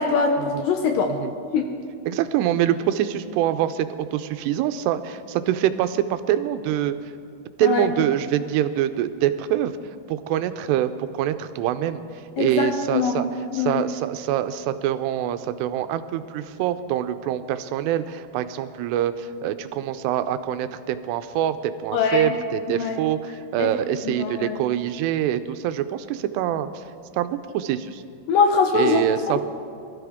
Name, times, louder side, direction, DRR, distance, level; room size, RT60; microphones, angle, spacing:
voice 1, 0.0-1.1 1.5-1.6 7.6-8.0 12.4-13.9 21.9-22.3 22.7-23.0 23.6-23.7 24.0-24.6 28.3-29.4, left 5 dB, 75° left, 3 dB, 2.1 m, -23 dB
voice 2, 2.1-7.0 7.6-9.8 10.1-12.0 12.4-13.3 13.5-26.7 27.2-28.0 28.7-29.4, right 11 dB, 90° right, 11 dB, 2.8 m, -25 dB
22.5 x 13.5 x 3.6 m, 2.3 s
omnidirectional pair, 4.7 m